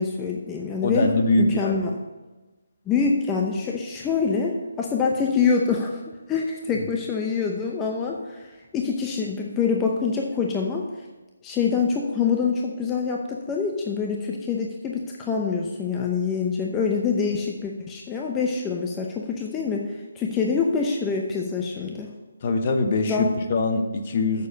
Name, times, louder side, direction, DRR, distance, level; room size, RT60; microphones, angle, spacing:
voice 1, 0.0-1.1 1.4-1.9 2.9-6.0 6.3-8.5 8.7-10.8 11.4-22.1 23.1-23.3, left 5 dB, 15° left, 0 dB, 0.7 m, -25 dB
voice 2, 0.8-1.8 22.4-24.5, left 2 dB, 40° left, 5 dB, 1.0 m, -22 dB
6.8 x 6.8 x 6.4 m, 1.2 s
figure-of-eight pair, 150°, 0 cm